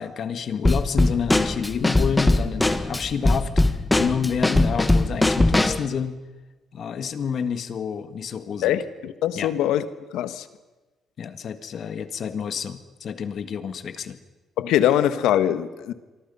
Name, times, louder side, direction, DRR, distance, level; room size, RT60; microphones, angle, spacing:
voice 1, 0.0-3.5 4.0-6.2 6.7-8.7 9.4-9.5 11.2-14.2, left 7 dB, 60° left, 1.8 m, -29 dB
Drum kit / Snare drum, 0.6-5.9, left 2 dB, 15° left, 1.6 m, -21 dB
voice 2, 8.6-9.9 10.1-10.5 14.6-15.9, left 11 dB, 90° left, 1.4 m, -22 dB
28.0 x 24.0 x 5.6 m
cardioid pair, 90°, 0 cm